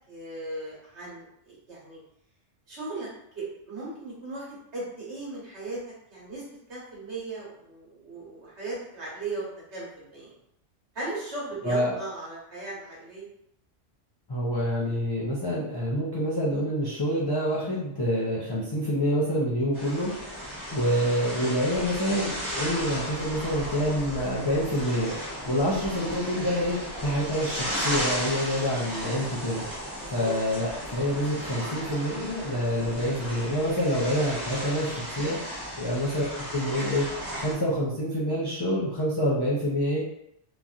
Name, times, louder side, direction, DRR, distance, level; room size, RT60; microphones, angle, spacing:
voice 1, 0.1-2.0 2.7-3.1 3.3-5.8 6.1-6.4 6.7-10.3 10.9-13.3 20.3-20.5 30.0-30.4 35.7-35.9, right 2 dB, 65° right, -6 dB, 1.4 m, -37 dB
voice 2, 11.6-11.9 14.3-20.1 20.7-29.6 30.1-35.4 35.8-37.1 37.4-40.0, equal, 40° left, -7 dB, 0.3 m, -27 dB
sound 1, 19.7-37.5, equal, 15° right, 1.1 m, -35 dB
3.0 x 2.6 x 2.4 m, 0.77 s
omnidirectional pair, 1.3 m